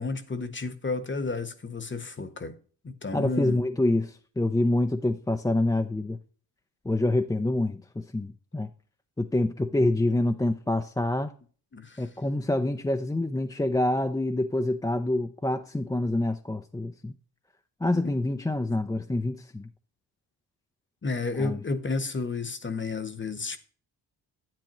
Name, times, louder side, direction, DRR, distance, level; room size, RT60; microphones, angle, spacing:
voice 1, 0.0-2.5 2.8-3.6 11.7-12.0 17.9-18.0 21.0-23.6, left 3 dB, 25° left, 1.2 m, -32 dB
voice 2, 3.1-6.2 6.8-8.7 9.2-11.3 12.0-17.1 17.8-19.7 21.4-21.6, left 1 dB, 10° left, 0.5 m, -26 dB
10.5 x 8.5 x 3.0 m
cardioid pair, 65°, 42 cm